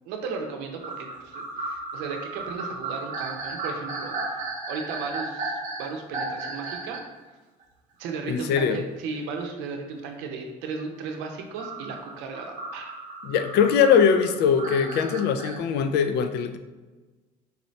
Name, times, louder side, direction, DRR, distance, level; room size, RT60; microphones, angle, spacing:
voice 1, 0.1-4.2 4.7-7.0 8.0-12.9, right 4 dB, 75° right, 3 dB, 0.7 m, -35 dB
sound 1, 0.8-7.1 7.6-7.7 9.1-9.2 11.6-15.6, right 3 dB, 45° right, 0.9 m, -34 dB
voice 2, 8.3-8.8 13.2-16.6, left 7 dB, 60° left, 9 dB, 0.4 m, -21 dB
4.2 x 2.7 x 3.1 m, 1.3 s
supercardioid pair, 95°, 19 cm